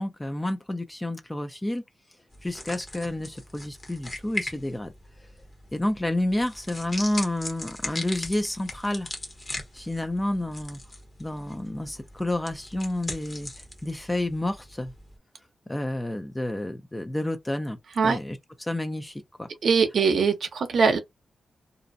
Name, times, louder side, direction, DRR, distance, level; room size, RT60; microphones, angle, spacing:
voice 1, 0.0-1.8 2.4-4.9 5.7-9.1 9.7-10.8 11.2-13.5 13.8-14.9 15.7-17.8 18.0-19.5, left 1 dB, 15° left, 0.4 m, -30 dB
sound 1, 2.3-15.2, left 2 dB, 30° left, 0.8 m, -39 dB
voice 2, 19.6-21.0, right 5 dB, 70° right, 0.6 m, -22 dB
2.5 x 2.0 x 2.6 m
cardioid pair, 90°, 0 cm